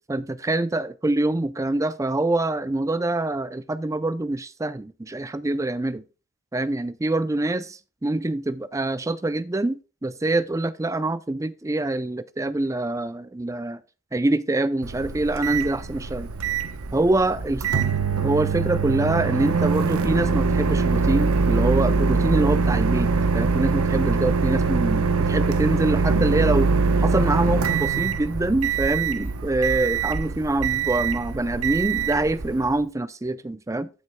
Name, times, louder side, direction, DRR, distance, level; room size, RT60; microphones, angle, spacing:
voice 1, 0.1-6.0 6.5-13.8 14.1-16.3 16.9-17.6 18.2-26.7 27.0-33.9, right 2 dB, 15° right, 0.4 m, -25 dB
Microwave oven, 14.8-32.8, right 4 dB, 85° right, 0.9 m, -23 dB
15.0 x 6.0 x 2.2 m
head